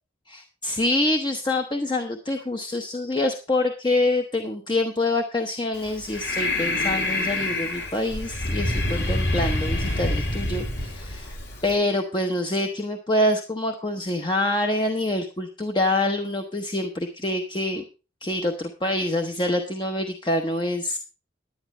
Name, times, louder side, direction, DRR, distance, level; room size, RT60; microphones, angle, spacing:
voice 1, 0.3-11.4 11.6-17.8 18.2-21.0, left 1 dB, 25° left, 4 dB, 0.9 m, -26 dB
Breathing, 5.8-11.7, left 2 dB, 60° left, 2.6 m, -27 dB
10.5 x 10.0 x 4.3 m, 0.32 s
head